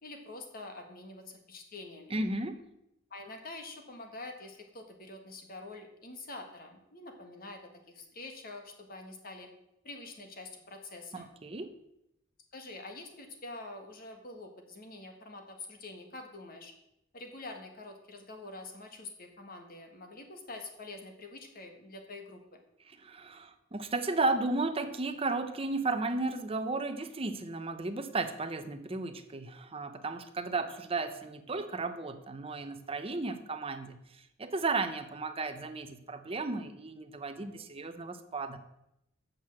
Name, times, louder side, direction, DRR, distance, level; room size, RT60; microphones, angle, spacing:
voice 1, 0.0-2.1 3.1-7.6 7.9-9.5 9.8-11.3 12.5-16.7 17.1-22.6, left 2 dB, 45° left, 5 dB, 1.6 m, -46 dB
voice 2, 2.1-2.6 11.1-11.7 22.9-34.0 34.4-38.6, right 3 dB, 30° right, 9 dB, 0.8 m, -34 dB
7.8 x 6.5 x 7.5 m, 0.84 s
head